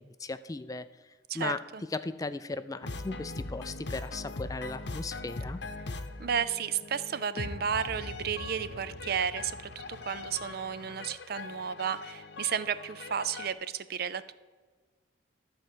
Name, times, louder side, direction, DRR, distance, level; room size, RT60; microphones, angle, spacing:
voice 1, 0.0-1.6 1.9-5.6, left 3 dB, 20° left, 12 dB, 0.3 m, -37 dB
voice 2, 1.3-1.8 6.2-14.3, right 7 dB, 55° right, 14 dB, 0.5 m, -33 dB
sound 1, 2.8-13.5, left 2 dB, 65° left, 0.8 m, -41 dB
13.0 x 4.4 x 7.8 m, 1.4 s
head